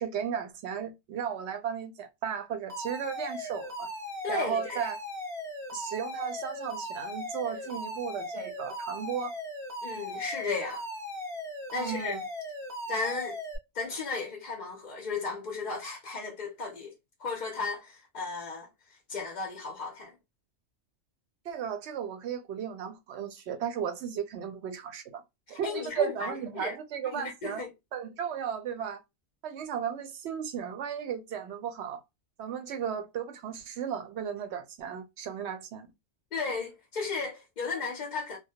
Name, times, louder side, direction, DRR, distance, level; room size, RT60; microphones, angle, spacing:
voice 1, 0.0-3.9 4.3-5.0 5.7-9.3 11.7-12.2 21.5-25.2 25.5-27.6 27.9-29.0 29.4-32.0 32.4-35.9, right 8 dB, 65° right, 0.8 m, -35 dB
Alarm, 2.7-13.6, left 1 dB, 5° left, 0.6 m, -38 dB
voice 2, 4.2-4.9 9.8-10.8 11.7-12.2 12.9-13.4 13.7-16.9 17.2-20.2 25.5-26.7 27.1-27.7 36.3-38.4, left 4 dB, 55° left, 0.5 m, -35 dB
2.2 x 2.1 x 2.7 m
omnidirectional pair, 1.3 m